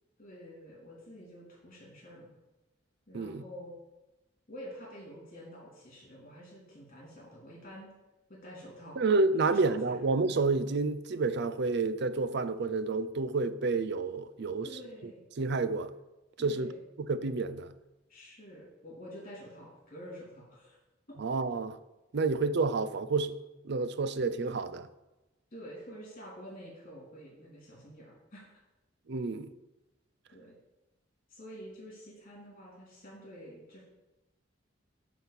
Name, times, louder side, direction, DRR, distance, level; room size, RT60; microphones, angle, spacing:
voice 1, 0.2-2.3 3.1-3.8 4.5-7.9 8.3-9.0 9.6-10.0 14.6-15.2 16.4-16.8 18.1-20.8 21.1-21.2 25.5-28.5 30.3-30.5 31.3-33.8, equal, 40° left, 3.2 m, -48 dB
voice 2, 9.0-14.8 15.4-15.9 16.4-16.7 17.1-17.7 21.2-21.8 22.1-23.4 23.6-24.9 29.1-29.5, right 3 dB, 60° right, 0.5 m, -29 dB
8.7 x 4.2 x 6.9 m
head